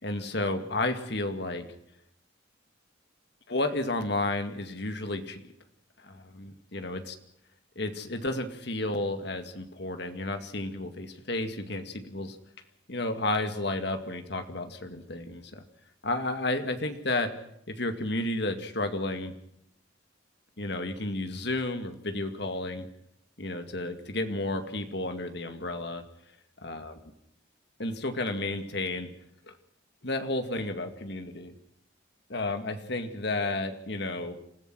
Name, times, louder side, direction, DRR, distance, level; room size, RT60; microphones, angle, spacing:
voice 1, 0.0-1.7 3.5-5.5 6.0-7.1 7.8-12.4 12.9-15.6 16.0-17.3 17.7-19.3 20.6-22.9 23.4-26.0 26.6-26.9 27.8-29.1 29.5-29.6 30.0-31.5 32.3-34.4, left 2 dB, 60° left, 7 dB, 2.2 m, -32 dB
29.0 x 15.5 x 6.3 m, 0.75 s
head